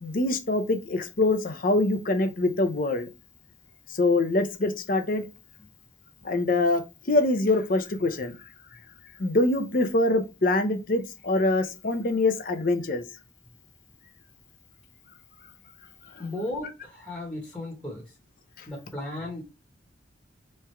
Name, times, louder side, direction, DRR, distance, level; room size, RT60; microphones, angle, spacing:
voice 1, 0.0-3.1 3.9-5.3 6.2-6.8 7.1-8.3 9.2-13.0 18.6-18.7, left 2 dB, 45° left, 0.6 m, -24 dB
voice 2, 16.2-18.1 18.7-19.4, left 1 dB, 5° left, 1.0 m, -35 dB
3.5 x 3.3 x 4.4 m
head